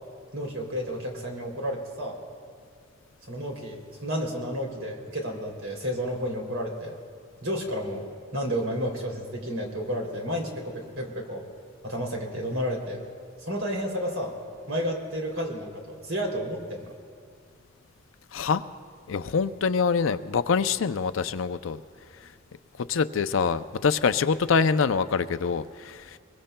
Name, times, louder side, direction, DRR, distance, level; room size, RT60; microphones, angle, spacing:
voice 1, 0.3-2.2 3.3-7.0 7.4-11.4 11.8-13.0 13.4-14.3 14.7-16.9, equal, 80° right, 0 dB, 3.0 m, -31 dB
voice 2, 18.3-18.7 19.1-21.8 22.9-26.2, left 5 dB, 75° left, 12 dB, 0.5 m, -25 dB
23.5 x 22.5 x 2.2 m, 2.3 s
head